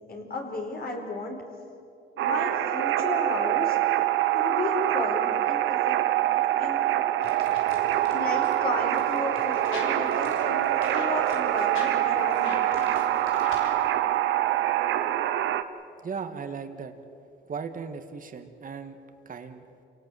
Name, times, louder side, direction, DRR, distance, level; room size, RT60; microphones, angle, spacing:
voice 1, 0.1-1.4 2.2-3.8 4.3-6.0 6.6-6.8 8.1-12.6, left 2 dB, 50° left, 1 dB, 4.9 m, -33 dB
sound 1, 2.2-15.6, right 13 dB, 80° right, 1.0 m, -25 dB
sound 2, 7.2-13.9, left 3 dB, 85° left, 4.3 m, -42 dB
voice 2, 16.0-16.9 17.5-19.0 19.3-19.6, right 6 dB, 45° right, 7 dB, 1.8 m, -37 dB
28.0 x 18.0 x 7.9 m, 2.6 s
cardioid pair, 90°, 20 cm